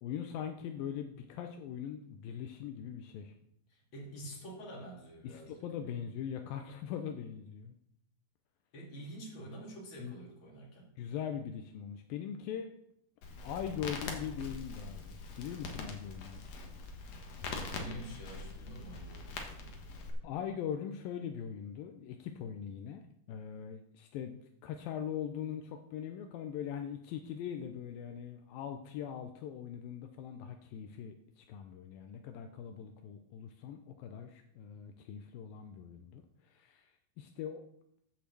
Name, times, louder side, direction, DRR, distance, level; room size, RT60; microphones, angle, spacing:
voice 1, 0.0-3.3 5.2-7.7 10.0-10.2 11.0-12.7 13.4-16.5 20.2-37.6, left 8 dB, 80° left, 6 dB, 2.2 m, -41 dB
voice 2, 3.7-5.6 8.7-10.9 17.7-19.7, right 1 dB, 35° left, -2 dB, 2.9 m, -47 dB
Crackle, 13.2-20.1, left 3 dB, 55° left, 2.0 m, -43 dB
8.3 x 6.6 x 7.5 m, 0.74 s
omnidirectional pair, 4.6 m